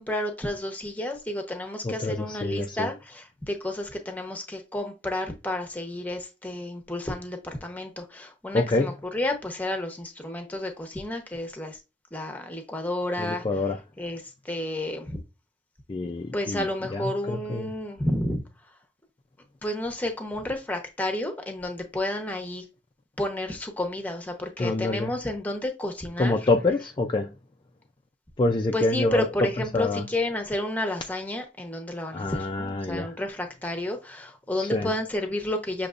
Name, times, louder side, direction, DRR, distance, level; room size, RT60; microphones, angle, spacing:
voice 1, 0.0-11.8 12.1-13.4 14.0-15.2 16.3-18.4 19.6-22.6 23.2-26.3 28.7-35.9, left 1 dB, 10° left, 0.9 m, -31 dB
voice 2, 1.8-2.9 8.5-8.9 13.2-13.8 15.9-16.7 16.9-17.7 24.6-25.1 26.2-27.3 28.4-29.3 29.7-30.0 32.1-33.1 34.6-34.9, left 2 dB, 25° left, 0.4 m, -26 dB
6.6 x 3.0 x 2.5 m
head